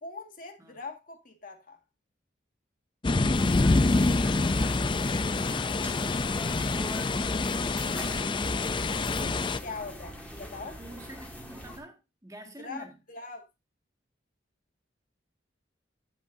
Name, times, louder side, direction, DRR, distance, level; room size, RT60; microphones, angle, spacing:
voice 1, 0.0-1.8 9.6-10.8 12.6-13.5, left 4 dB, 45° left, 1.9 m, -41 dB
sound 1, 3.0-9.6, left 3 dB, 25° left, 0.4 m, -26 dB
sound 2, 3.3-11.8, left 1 dB, 10° left, 2.2 m, -42 dB
voice 2, 10.8-13.0, right 1 dB, 20° right, 1.7 m, -50 dB
15.0 x 5.4 x 2.6 m
head